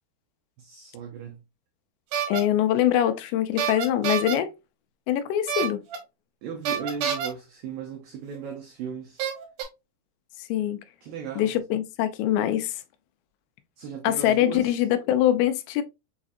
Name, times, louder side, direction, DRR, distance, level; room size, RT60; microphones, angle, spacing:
voice 1, 0.6-1.4 6.4-9.3 11.0-11.5 13.8-14.8, right 7 dB, 85° right, 2.0 m, -37 dB
sound 1, 2.1-2.4 3.6-4.3 5.5-6.0 6.6-7.3 8.3-8.4 9.2-9.6, right 8 dB, 70° right, 1.9 m, -27 dB
voice 2, 2.3-4.5 5.1-5.8 10.5-10.8 11.4-12.8 14.0-15.8, left 11 dB, 90° left, 2.9 m, -23 dB
7.0 x 2.4 x 2.5 m
omnidirectional pair, 5.0 m